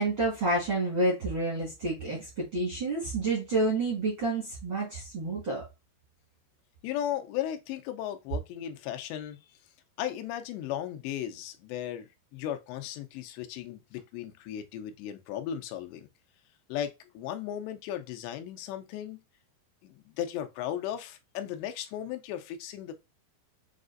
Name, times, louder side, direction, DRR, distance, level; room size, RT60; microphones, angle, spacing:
voice 1, 0.0-5.6, right 2 dB, 65° right, 1.2 m, -29 dB
voice 2, 6.8-9.6 10.0-16.1 16.7-19.2 19.8-22.9, left 11 dB, 85° left, 2.8 m, -36 dB
7.1 x 2.5 x 2.5 m
omnidirectional pair, 4.8 m